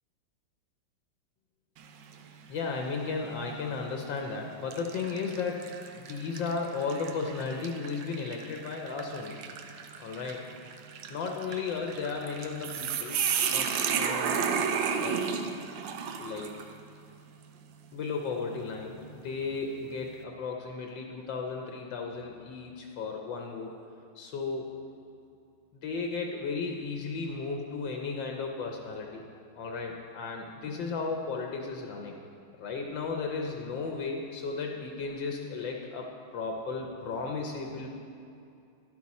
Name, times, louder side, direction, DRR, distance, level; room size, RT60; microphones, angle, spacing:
sound 1, 1.8-2.3 2.8-2.9 3.9-4.1 4.7-16.7, right 7 dB, 70° right, 1.3 m, -33 dB
voice 1, 2.5-9.4 10.0-10.4 11.1-13.2 13.5-14.5 15.0-15.2 16.2-16.5 17.9-23.7 24.1-24.7 25.7-29.2 29.6-32.2 32.6-37.9, left 4 dB, 70° left, 2 dB, 1.4 m, -35 dB
11.0 x 9.5 x 4.2 m, 2.6 s
omnidirectional pair, 2.2 m